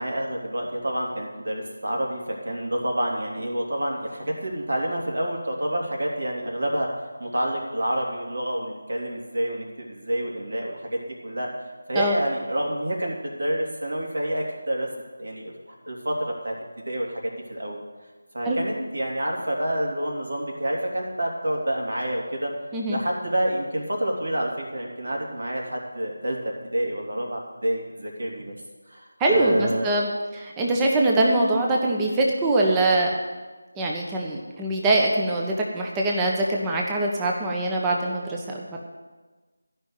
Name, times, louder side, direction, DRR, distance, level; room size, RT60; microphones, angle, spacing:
voice 1, 0.0-11.5 11.9-14.9 15.2-15.5 15.9-16.5 16.8-17.2 17.5-17.8 18.3-22.5 22.9-26.4 26.7-28.5 28.9-29.9, right 1 dB, 70° right, -1 dB, 3.2 m, -28 dB
voice 2, 29.2-33.1 33.8-38.6, right 2 dB, 10° right, -1 dB, 1.2 m, -23 dB
13.5 x 5.7 x 9.3 m, 1.3 s
figure-of-eight pair, 165°, 0 cm